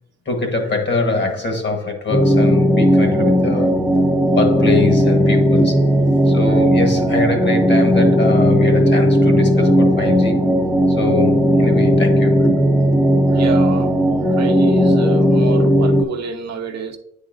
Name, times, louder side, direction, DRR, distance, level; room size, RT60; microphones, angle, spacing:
voice 1, 0.2-3.8 4.4-6.0 6.2-10.4 10.9-12.4, left 3 dB, 35° left, 1.3 m, -23 dB
sound 1, 2.1-16.0, equal, 5° left, 0.6 m, -15 dB
voice 2, 13.3-13.9 14.2-17.0, right 5 dB, 60° right, 0.8 m, -28 dB
9.2 x 4.0 x 2.5 m
cardioid pair, 90°, 30 cm